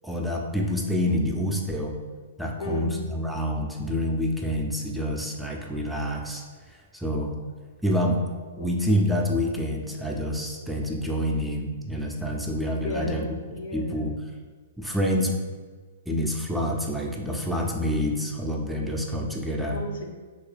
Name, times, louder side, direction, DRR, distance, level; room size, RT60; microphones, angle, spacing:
voice 1, 0.0-1.9 2.4-6.4 6.9-7.3 7.8-8.2 8.6-13.4 13.7-14.1 14.8-15.3 16.1-19.8, equal, ahead, -1 dB, 0.4 m, -27 dB
voice 2, 2.6-3.0 8.6-8.7 12.7-14.1 19.7-20.1, left 1 dB, 70° left, 3 dB, 0.6 m, -34 dB
2.9 x 2.8 x 3.3 m, 1.5 s
hypercardioid pair, 120°, 0 cm